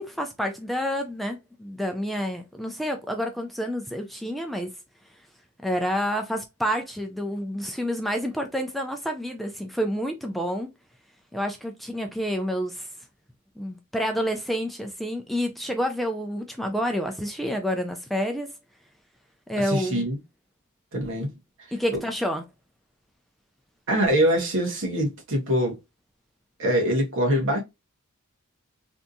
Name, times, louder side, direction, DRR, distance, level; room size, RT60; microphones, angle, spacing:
voice 1, 0.0-4.7 5.6-10.7 11.3-12.9 13.6-18.5 19.5-20.0 21.7-22.4, equal, ahead, 0.4 m, -29 dB
voice 2, 19.7-20.2 20.9-21.3 21.9-22.0 23.9-25.8 26.6-27.6, equal, 60° right, 1.6 m, -23 dB
3.4 x 2.7 x 2.5 m
head